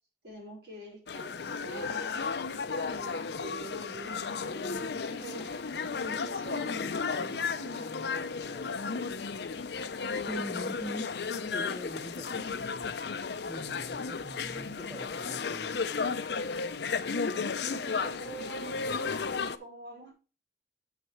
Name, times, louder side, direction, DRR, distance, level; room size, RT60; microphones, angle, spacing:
voice 1, 0.2-7.9 17.7-20.1, right 1 dB, 65° right, -3 dB, 5.0 m, -45 dB
sound 1, 1.1-19.6, left 5 dB, 70° left, 0.6 m, -34 dB
voice 2, 8.2-9.1 10.3-12.7 13.4-16.0, equal, ahead, -1 dB, 1.2 m, -43 dB
7.4 x 5.9 x 4.5 m, 0.35 s
head